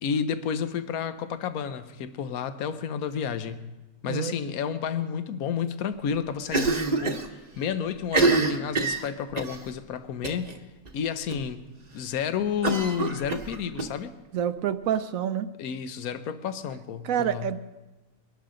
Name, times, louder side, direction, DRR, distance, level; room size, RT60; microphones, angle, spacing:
voice 1, 0.0-3.7 4.0-10.5 10.9-11.6 11.9-14.1 15.6-17.5, left 7 dB, 75° left, 11 dB, 1.2 m, -31 dB
Cough, 6.5-7.3 7.5-7.6 8.0-9.6 10.2-10.5 10.9-11.0 11.3-11.4 12.6-13.9, right 3 dB, 30° right, 1.0 m, -26 dB
voice 2, 14.3-15.5 17.0-17.6, right 9 dB, 70° right, 12 dB, 1.0 m, -27 dB
22.5 x 12.0 x 3.8 m, 1.1 s
omnidirectional pair, 1.6 m